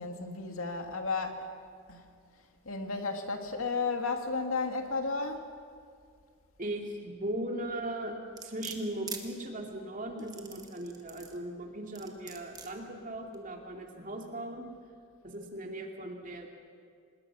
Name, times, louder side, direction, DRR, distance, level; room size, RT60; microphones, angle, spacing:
voice 1, 0.0-1.5 1.9-2.0 2.7-5.4, left 4 dB, 85° left, 5 dB, 2.2 m, -33 dB
voice 2, 6.6-8.1 8.4-14.7 15.2-16.5, right 1 dB, 40° right, 2 dB, 2.6 m, -38 dB
sound 1, 8.4-9.2 10.2-11.4 12.0-12.7 13.3-13.4, right 5 dB, 20° right, 1.5 m, -43 dB
25.0 x 20.5 x 6.2 m, 2.2 s
head